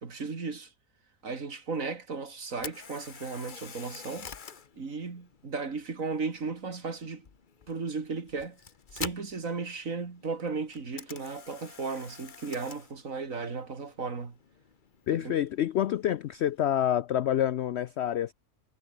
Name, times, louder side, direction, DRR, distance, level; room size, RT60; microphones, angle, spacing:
voice 1, 0.0-0.7 1.2-4.3 4.8-7.3 7.7-8.6 8.9-14.4 15.1-15.4, right 4 dB, 55° right, 2.8 m, -35 dB
Camera, 2.5-16.6, left 6 dB, 35° left, 1.0 m, -48 dB
voice 2, 15.1-18.3, left 11 dB, 75° left, 0.6 m, -27 dB
omnidirectional pair, 1.7 m